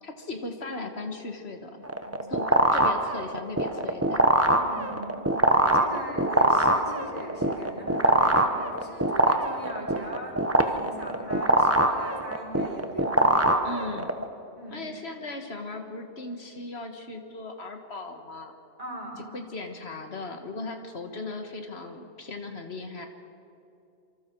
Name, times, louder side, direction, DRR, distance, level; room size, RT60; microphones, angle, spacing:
voice 1, 0.0-1.8 2.3-4.3 13.6-14.1 14.7-18.5 19.2-23.1, left 2 dB, 70° left, 5 dB, 1.9 m, -37 dB
sound 1, 1.8-14.2, right 1 dB, 15° right, 1.1 m, -23 dB
voice 2, 1.9-2.2 4.5-5.3 5.7-10.4 10.6-13.7 14.5-14.8 18.8-19.2, right 1 dB, 35° right, -1 dB, 4.8 m, -40 dB
27.5 x 25.0 x 4.7 m, 2.8 s
omnidirectional pair, 1.1 m